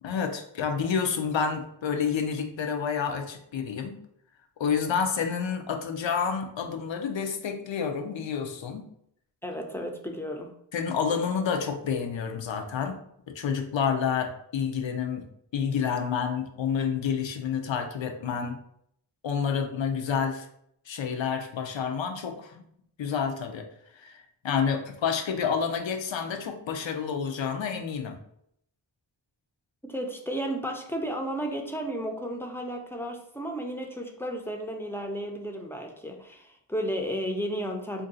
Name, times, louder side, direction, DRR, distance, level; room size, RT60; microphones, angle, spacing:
voice 1, 0.0-4.0 4.6-8.9 10.7-13.0 13.3-15.3 15.5-18.6 19.2-20.5 20.9-22.6 23.0-23.7 23.9-28.2, left 6 dB, 75° left, 5 dB, 0.6 m, -29 dB
voice 2, 9.4-10.5 29.8-38.1, equal, 5° left, 2 dB, 0.5 m, -33 dB
2.6 x 2.3 x 3.9 m, 0.71 s
wide cardioid pair, 50°, 46 cm